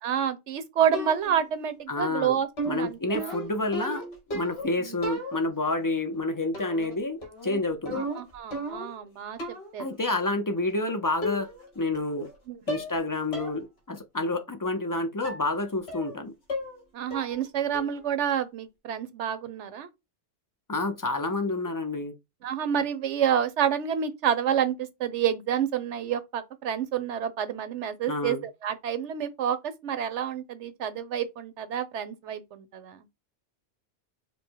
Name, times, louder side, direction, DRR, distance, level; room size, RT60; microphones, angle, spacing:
voice 1, 0.0-3.4 4.8-5.0 7.9-9.4 9.7-9.9 12.5-12.8 16.9-19.9 22.4-28.4 28.6-33.0, right 9 dB, 75° right, 1.1 m, -29 dB
sound 1, 0.9-1.5 2.6-4.7 5.0-5.7 6.5-7.0 7.2-9.0 9.4-9.8 10.7-10.8 11.2-11.7 12.0-12.4 12.7-13.0 13.3-13.6 14.0-14.1 15.2-15.5 15.9-16.2 16.5-16.8 17.1-17.5 17.7-18.1, equal, 60° left, 1.8 m, -35 dB
voice 2, 1.9-2.4 2.7-4.0 4.3-8.1 9.8-11.5 11.8-12.3 12.7-16.3 20.7-22.1 28.1-28.4, left 2 dB, 30° left, 0.4 m, -29 dB
5.4 x 2.1 x 4.5 m
omnidirectional pair, 1.2 m